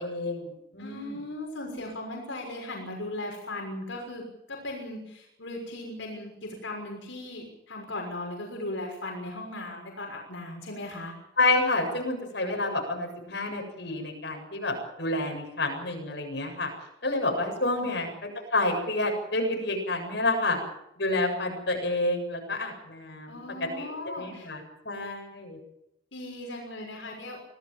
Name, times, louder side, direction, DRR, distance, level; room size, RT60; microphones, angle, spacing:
voice 1, 0.0-1.2 11.4-16.7 17.0-18.1 18.5-20.6 21.0-23.4 23.8-25.6, left 2 dB, 60° left, 3 dB, 7.6 m, -29 dB
voice 2, 0.8-4.2 4.5-6.3 6.6-11.1 17.8-18.0 23.3-24.5 26.1-27.4, left 1 dB, 80° left, 1 dB, 6.2 m, -37 dB
25.5 x 18.0 x 7.4 m, 0.83 s
head